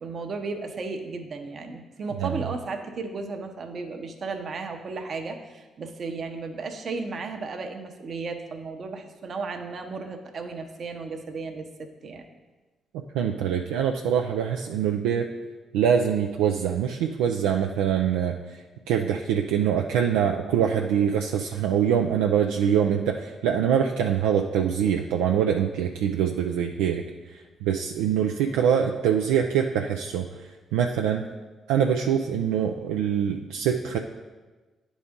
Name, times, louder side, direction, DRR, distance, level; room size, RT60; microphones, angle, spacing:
voice 1, 0.0-12.3, right 4 dB, 55° right, 5 dB, 0.9 m, -34 dB
voice 2, 13.1-15.3 15.7-18.3 18.9-27.0 27.6-30.2 30.7-31.2 31.7-34.0, right 8 dB, 85° right, 2 dB, 0.3 m, -24 dB
10.0 x 4.1 x 3.6 m, 1.2 s
hypercardioid pair, 50°, 0 cm